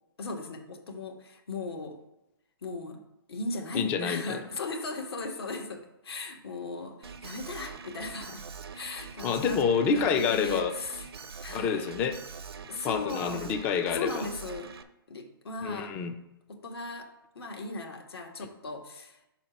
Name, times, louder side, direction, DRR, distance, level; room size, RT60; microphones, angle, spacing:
voice 1, 0.2-2.0 2.6-3.0 3.3-8.4 8.7-9.6 9.9-11.9 12.7-13.4 13.9-14.7 15.1-16.0 16.5-19.2, left 3 dB, 75° left, 3 dB, 1.6 m, -37 dB
voice 2, 3.7-4.4 9.2-10.7 11.5-12.2 12.8-14.3 15.6-16.1, left 6 dB, 10° left, 7 dB, 0.3 m, -28 dB
Alarm, 7.0-14.8, right 6 dB, 75° right, 0.7 m, -44 dB
5.0 x 4.3 x 5.8 m, 0.90 s
hypercardioid pair, 160°, 13 cm